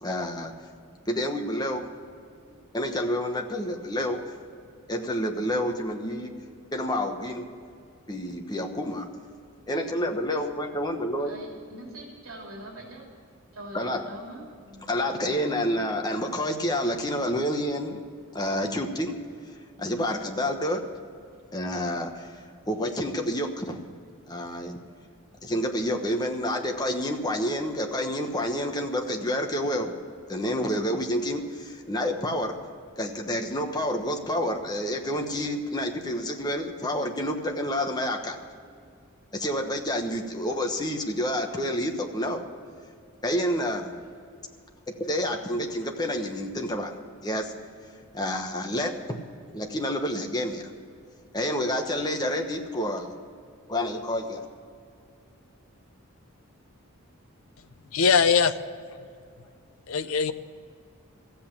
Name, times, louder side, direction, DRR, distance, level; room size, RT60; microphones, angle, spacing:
voice 1, 0.0-0.5 1.1-1.8 2.7-4.2 4.9-6.3 6.7-7.5 8.1-9.1 9.7-11.4 13.7-14.0 14.9-18.0 18.3-19.2 19.8-20.8 21.5-23.8 24.3-24.7 25.4-29.9 30.3-32.6 33.0-38.4 39.3-42.4 43.2-43.9 44.9-46.9 47.2-47.5 48.1-49.2 49.5-50.7 51.3-53.1 53.7-54.4, equal, 20° left, 3 dB, 1.1 m, -29 dB
voice 2, 11.1-13.1 13.5-15.8 16.2-17.3, right 1 dB, 80° right, -1 dB, 2.9 m, -44 dB
voice 3, 57.9-58.5 59.9-60.3, left 6 dB, 70° left, 10 dB, 0.5 m, -21 dB
14.5 x 7.9 x 8.7 m, 2.3 s
head